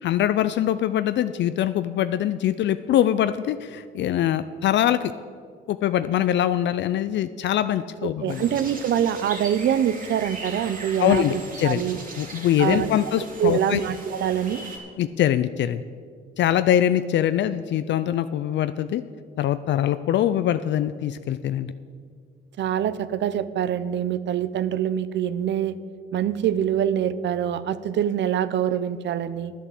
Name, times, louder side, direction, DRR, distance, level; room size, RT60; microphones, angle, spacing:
voice 1, 0.0-5.1 5.7-8.4 11.0-11.8 12.2-13.8 15.0-15.8 16.4-19.0 19.4-21.7, left 11 dB, 65° left, 12 dB, 0.4 m, -23 dB
voice 2, 8.0-12.0 12.6-13.1 13.4-14.6 22.6-25.8 26.1-29.5, right 9 dB, 65° right, 15 dB, 0.6 m, -25 dB
sound 1, 8.3-14.8, right 2 dB, 45° right, 2.8 m, -39 dB
10.5 x 8.0 x 7.6 m, 2.1 s
cardioid pair, 90°, 20 cm